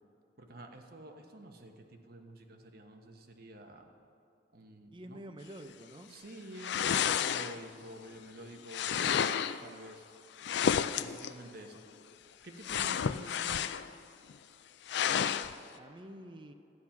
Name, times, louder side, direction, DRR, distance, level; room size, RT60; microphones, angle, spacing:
voice 1, 0.4-3.9 4.5-5.2 6.1-10.1 10.9-11.8 12.4-13.6, right 1 dB, 55° right, 4 dB, 1.1 m, -49 dB
voice 2, 4.9-6.1 15.0-15.4 15.8-16.5, right 1 dB, 25° right, 7 dB, 0.6 m, -48 dB
sound 1, 6.6-7.8 8.7-9.6 10.4-11.3 12.6-13.9 14.3-14.4 14.9-15.5, left 8 dB, 65° left, 0.4 m, -31 dB
13.0 x 10.0 x 5.8 m, 2.7 s
head